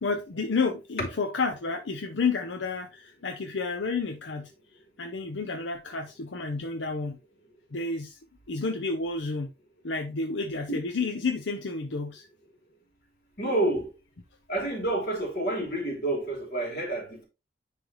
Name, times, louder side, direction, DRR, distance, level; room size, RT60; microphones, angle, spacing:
voice 1, 0.0-4.5 5.0-7.2 7.7-8.2 8.5-9.5 9.8-12.3, left 4 dB, 85° left, 0.7 m, -30 dB
voice 2, 13.4-13.9 14.5-17.3, right 1 dB, 55° left, 3.0 m, -29 dB
10.0 x 3.4 x 3.0 m
head